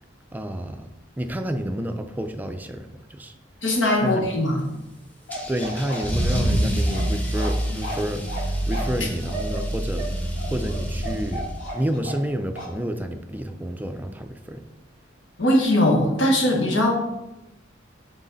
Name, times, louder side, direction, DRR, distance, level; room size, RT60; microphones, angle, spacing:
voice 1, 0.3-0.9 1.2-3.3 4.0-4.3 5.5-10.1 10.4-11.5 11.7-14.6, equal, 10° right, 6 dB, 0.4 m, -30 dB
voice 2, 3.6-4.6 15.4-16.9, left 1 dB, 70° left, -1 dB, 1.4 m, -20 dB
Bark, 5.3-12.3 12.6-12.7, right 1 dB, 45° left, 2.2 m, -35 dB
Car / Engine starting / Accelerating revving vroom, 5.3-11.8, right 1 dB, 10° left, 0.8 m, -27 dB
6.1 x 4.1 x 4.0 m, 0.95 s
head